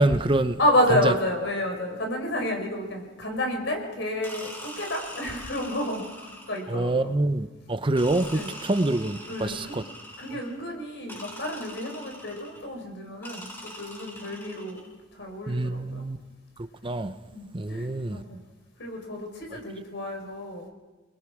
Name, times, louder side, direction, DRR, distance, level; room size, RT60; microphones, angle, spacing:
voice 1, 0.0-0.6 1.0-1.1 6.7-9.8 15.5-16.2 16.8-17.1 17.5-18.2, right 2 dB, 25° right, 0.6 m, -25 dB
voice 2, 0.6-7.1 8.3-8.5 9.3-9.8 10.2-16.0 17.3-18.4 18.8-20.7, left 1 dB, 65° left, 4.8 m, -30 dB
sound 1, 4.2-6.8 7.9-10.6 11.1-12.7 13.2-14.9, equal, 15° left, 7.3 m, -43 dB
29.0 x 21.0 x 4.9 m
head